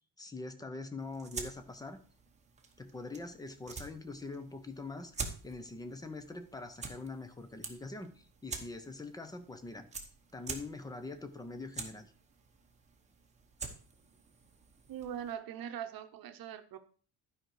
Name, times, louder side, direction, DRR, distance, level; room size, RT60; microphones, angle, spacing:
voice 1, 0.2-2.0 2.8-5.1 5.4-9.9 10.3-12.1, left 3 dB, 10° left, 0.5 m, -43 dB
sound 1, 1.0-15.3, right 4 dB, 15° right, 0.9 m, -47 dB
voice 2, 14.9-16.8, right 9 dB, 45° right, 0.9 m, -41 dB
11.5 x 5.1 x 4.6 m
cardioid pair, 175°, 48 cm